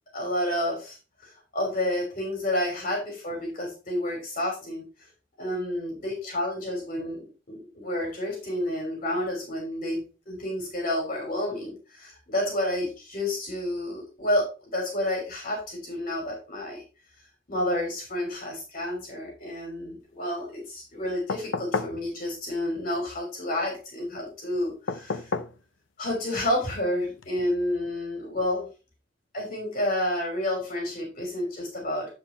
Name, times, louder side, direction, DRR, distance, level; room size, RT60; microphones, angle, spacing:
voice 1, 0.1-4.8 5.4-16.8 17.2-25.3 26.0-28.7 29.3-32.1, left 1 dB, 45° left, -1 dB, 3.2 m, -30 dB
sound 1, 21.3-22.0 24.9-25.6 27.2-27.3, left 4 dB, 70° left, 0.7 m, -30 dB
9.9 x 4.8 x 4.3 m, 0.33 s
head